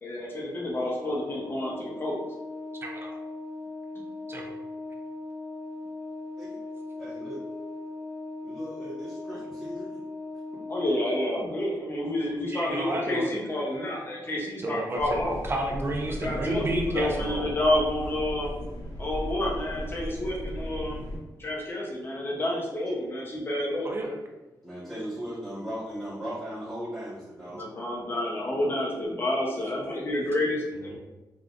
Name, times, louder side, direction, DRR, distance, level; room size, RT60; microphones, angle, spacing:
voice 1, 0.0-2.2 10.7-15.4 16.2-18.5 19.0-21.0 21.4-24.1 27.5-31.0, left 1 dB, 30° left, -3 dB, 0.7 m, -29 dB
Organ, 1.1-11.8, left 2 dB, 85° right, 1.2 m, -39 dB
voice 2, 2.8-3.2 4.3-4.5 12.5-13.3 14.6-17.6 23.8-24.1, right 2 dB, 30° right, 1 dB, 0.5 m, -31 dB
voice 3, 7.0-7.4 8.4-10.0 24.6-27.7, equal, ahead, -12 dB, 1.0 m, -37 dB
sound 1, 15.0-21.2, equal, 60° left, 1.1 m, -37 dB
3.5 x 2.5 x 2.4 m, 1.1 s
wide cardioid pair, 130°, 8 cm